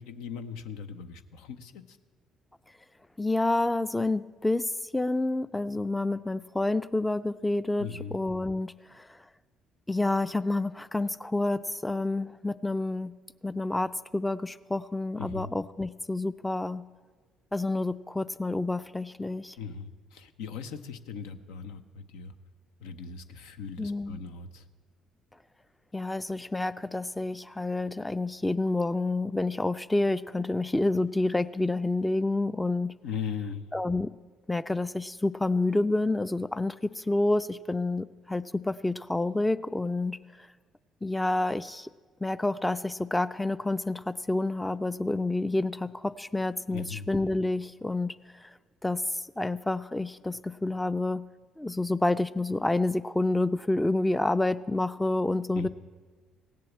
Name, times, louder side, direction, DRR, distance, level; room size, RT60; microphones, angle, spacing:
voice 1, 0.0-2.0 7.8-8.2 15.2-15.5 19.6-22.3 22.8-24.6 33.0-33.7 46.7-47.0 55.6-55.7, left 6 dB, 80° left, 9 dB, 0.7 m, -39 dB
voice 2, 3.2-9.2 9.9-13.1 13.4-16.8 17.5-19.6 23.8-24.2 25.9-32.9 33.7-34.1 34.5-40.5 41.0-41.9 42.2-48.5 48.8-51.2 51.6-55.7, left 2 dB, 10° left, 15 dB, 0.4 m, -29 dB
17.0 x 7.6 x 8.4 m, 1.5 s
hypercardioid pair, 60°, 0 cm